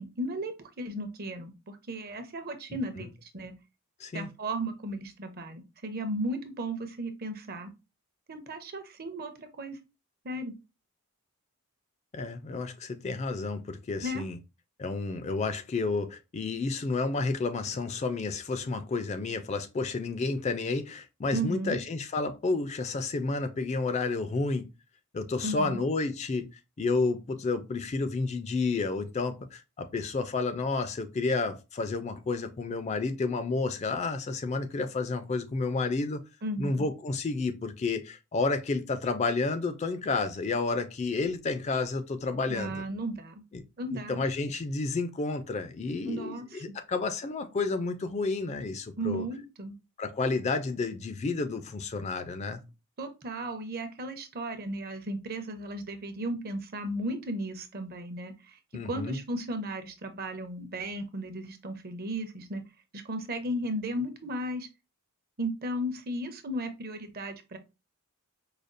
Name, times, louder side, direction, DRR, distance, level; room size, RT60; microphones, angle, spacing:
voice 1, 0.0-3.5 4.1-7.7 8.3-9.8 10.2-10.5 14.0-14.2 21.3-21.8 25.4-25.8 36.4-36.9 42.5-43.4 43.8-44.2 46.1-46.6 49.0-49.7 53.0-58.6 58.8-62.6 62.9-64.7 65.4-67.6, right 1 dB, 45° right, 0.7 m, -35 dB
voice 2, 2.7-3.1 4.0-4.3 12.1-14.4 14.8-24.7 25.1-26.5 26.8-36.2 36.6-42.8 43.5-43.6 43.9-49.3 50.0-52.6 58.7-59.2, left 3 dB, 30° left, 0.4 m, -31 dB
4.9 x 2.3 x 2.5 m
head